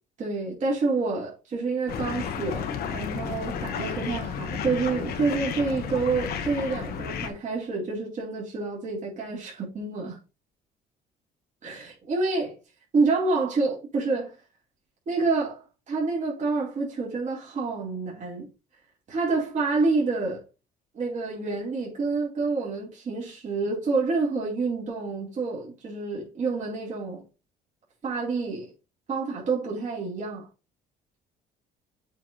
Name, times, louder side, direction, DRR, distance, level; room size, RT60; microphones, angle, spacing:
voice 1, 0.2-10.2 11.6-12.6 12.9-14.3 15.1-18.5 19.1-20.4 20.9-27.2 28.0-28.7 29.1-30.5, right 3 dB, 45° right, 3.7 m, -28 dB
sound 1, 1.9-7.3, left 7 dB, 65° left, 1.2 m, -32 dB
7.7 x 4.5 x 3.2 m
cardioid pair, 110°, 17 cm